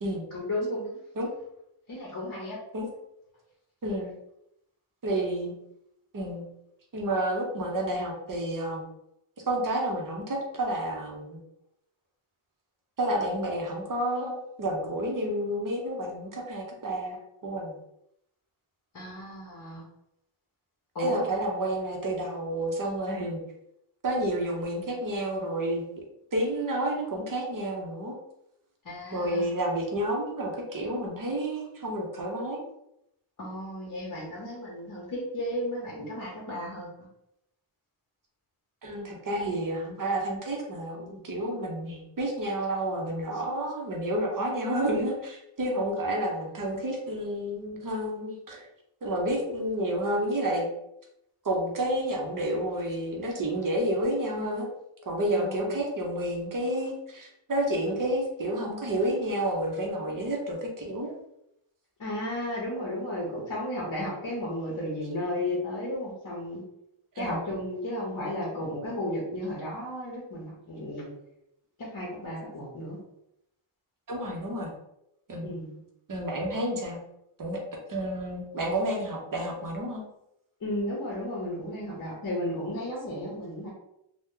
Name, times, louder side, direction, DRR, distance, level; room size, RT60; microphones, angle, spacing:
voice 1, 0.3-1.0 1.9-2.6 18.9-19.8 20.9-21.2 28.8-29.5 33.4-36.9 55.3-55.8 62.0-66.6 67.2-71.1 71.8-73.0 75.4-75.8 80.6-83.7, left 1 dB, 40° left, -4 dB, 0.8 m, -34 dB
voice 2, 5.0-5.5 6.1-6.4 6.9-8.9 9.5-11.4 13.0-17.2 17.4-17.8 21.0-23.4 24.0-25.8 26.3-28.2 29.1-32.6 38.8-48.7 49.0-50.7 51.4-54.7 55.0-61.1 67.1-67.4 74.1-74.7 75.3-75.5 76.1-77.0 77.4-77.6 77.9-80.0, right 1 dB, 40° right, 0 dB, 0.7 m, -30 dB
2.9 x 2.2 x 3.6 m, 0.81 s
wide cardioid pair, 155°, 49 cm